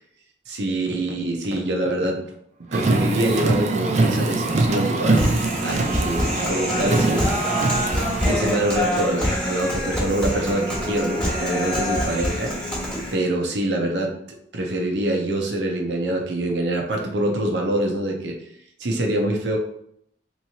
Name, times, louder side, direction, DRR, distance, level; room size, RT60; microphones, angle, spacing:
voice 1, 0.5-2.2 2.7-5.3 5.6-7.9 8.3-12.5 13.1-14.1 14.5-18.3 18.8-19.6, right 1 dB, 75° right, 1 dB, 0.8 m, -25 dB
Car, 2.7-8.4, right 2 dB, 40° right, 0.4 m, -23 dB
Human voice, 5.1-13.1, equal, 5° left, 1.3 m, -25 dB
3.6 x 3.0 x 2.8 m, 0.71 s
head